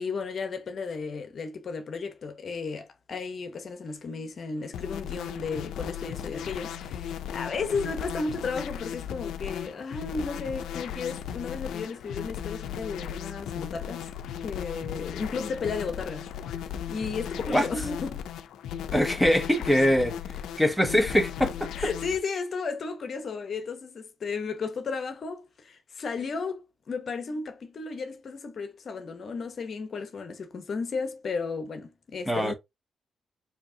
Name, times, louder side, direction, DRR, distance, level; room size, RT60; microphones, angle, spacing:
voice 1, 0.0-14.1 14.4-16.3 16.9-18.3 21.8-32.5, left 4 dB, 55° left, 0.8 m, -34 dB
sound 1, 4.7-22.2, left 9 dB, 90° left, 0.4 m, -36 dB
voice 2, 18.9-20.1 20.6-21.7 32.3-32.5, equal, ahead, 0.8 m, -23 dB
4.6 x 2.8 x 2.7 m
cardioid pair, 80°, 0 cm